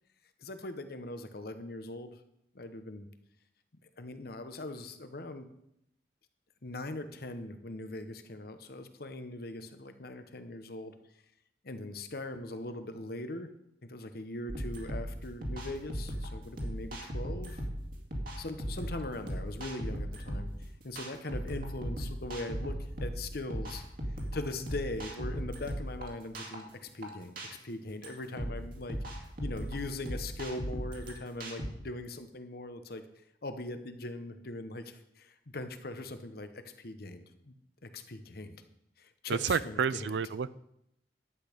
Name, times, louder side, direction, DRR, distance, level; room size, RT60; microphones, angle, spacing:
voice 1, 0.4-2.2 2.5-3.1 4.0-5.5 6.6-10.9 11.6-13.5 13.8-17.6 18.4-22.8 23.0-23.8 24.3-33.0 33.4-36.5 36.8-37.5 37.8-38.6 39.0-40.2, left 2 dB, 55° left, 8 dB, 1.0 m, -41 dB
sound 1, 14.5-31.7, equal, 50° right, 2.2 m, -38 dB
voice 2, 39.3-40.5, right 6 dB, 85° right, 17 dB, 0.4 m, -30 dB
11.0 x 8.4 x 5.2 m, 0.79 s
head